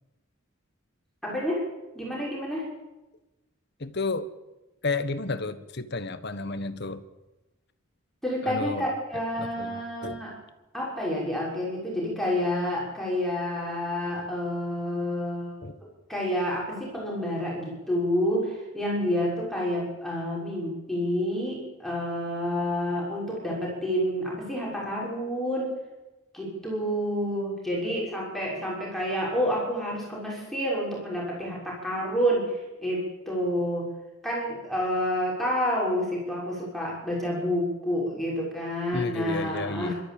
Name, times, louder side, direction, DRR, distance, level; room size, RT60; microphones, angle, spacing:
voice 1, 1.2-1.6 1.9-2.7 8.2-10.3 10.7-15.5 16.1-25.8 26.3-32.5 32.8-33.9 34.2-39.9, equal, ahead, -4 dB, 6.4 m, -29 dB
voice 2, 3.8-4.3 4.8-7.0 8.4-8.9 9.4-10.2 15.6-15.8 38.9-39.9, left 3 dB, 55° left, 11 dB, 1.4 m, -32 dB
27.5 x 13.5 x 9.0 m, 1.0 s
head